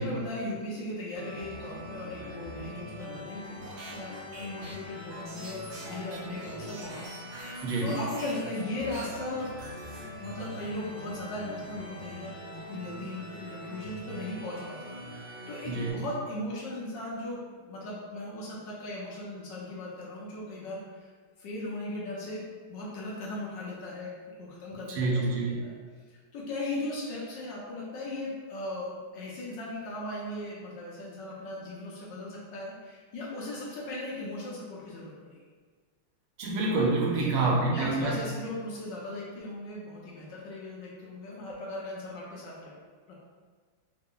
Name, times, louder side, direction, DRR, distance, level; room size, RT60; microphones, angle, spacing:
voice 1, 0.0-7.0 7.5-9.5 10.2-12.4 12.7-21.1 21.4-22.4 22.7-24.1 24.4-25.2 25.6-25.7 26.1-35.4 37.1-42.7 43.1-43.2, left 1 dB, 70° left, -5 dB, 1.2 m, -38 dB
sound 1, 1.1-15.9, left 1 dB, 20° left, 0.8 m, -43 dB
sound 2, 3.6-8.6 8.9-10.6, right 1 dB, 60° right, 1.1 m, -45 dB
voice 2, 7.6-7.9 15.6-16.0 24.9-25.6 36.4-38.2, right 3 dB, 80° right, -2 dB, 1.5 m, -27 dB
3.7 x 2.1 x 3.7 m, 1.5 s
omnidirectional pair, 2.3 m